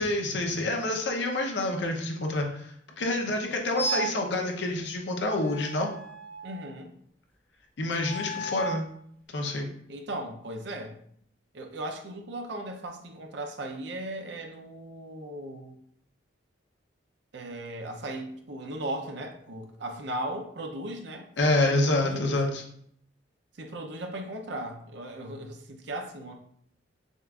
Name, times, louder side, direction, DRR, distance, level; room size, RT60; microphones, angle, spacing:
voice 1, 0.0-5.9 7.8-8.9 9.3-9.7 21.4-22.6, left 2 dB, 60° left, 2 dB, 0.7 m, -27 dB
sound 1, 3.8-4.3 5.4-6.7 8.0-8.9, right 2 dB, 10° left, 0.6 m, -34 dB
voice 2, 6.4-6.9 9.9-11.0 11.5-15.8 17.3-21.3 21.6-22.3 23.5-26.4, right 1 dB, 60° right, 4 dB, 0.5 m, -37 dB
6.4 x 2.4 x 2.3 m, 0.67 s
head